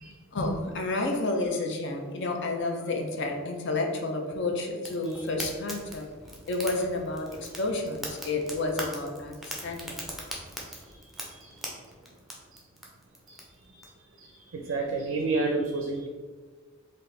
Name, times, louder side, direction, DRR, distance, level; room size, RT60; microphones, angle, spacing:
voice 1, 0.3-6.1 6.5-10.2, left 2 dB, 60° left, 3 dB, 0.5 m, -30 dB
Fire, 4.8-13.9, right 1 dB, ahead, 0.5 m, -41 dB
voice 2, 10.6-11.7 12.5-12.6 13.3-13.9 14.2-16.1, right 3 dB, 70° right, 2 dB, 0.4 m, -32 dB
4.1 x 2.5 x 3.2 m, 1.4 s
head